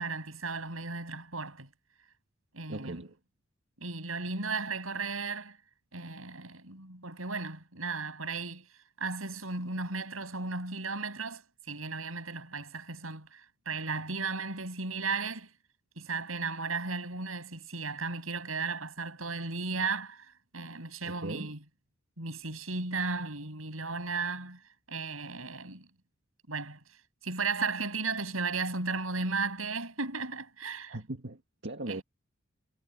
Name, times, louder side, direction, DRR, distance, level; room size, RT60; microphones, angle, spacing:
voice 1, 0.0-1.7 2.5-3.1 3.8-5.6 5.9-8.7 9.0-15.5 16.0-20.3 20.5-21.6 22.2-24.6 24.9-25.9 26.5-26.8 27.2-31.0 31.9-32.0, right 4 dB, 85° right, 7.5 m, -35 dB
voice 2, 2.7-3.2 21.0-21.5 30.9-32.0, right 2 dB, 60° right, 1.9 m, -39 dB
head